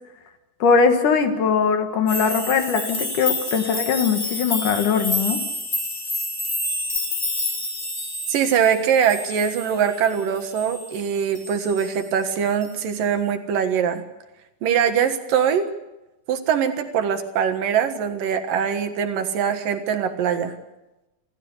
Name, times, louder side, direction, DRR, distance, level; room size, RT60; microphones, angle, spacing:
voice 1, 0.6-5.4, left 5 dB, 65° left, 7 dB, 3.1 m, -20 dB
sound 1, 2.1-11.0 11.3-11.9 12.6-12.7, left 2 dB, 20° left, 5.5 m, -29 dB
voice 2, 8.3-14.0 14.6-15.7 16.3-20.5, right 8 dB, 70° right, 8 dB, 3.1 m, -22 dB
27.0 x 14.5 x 8.2 m, 0.99 s
omnidirectional pair, 4.1 m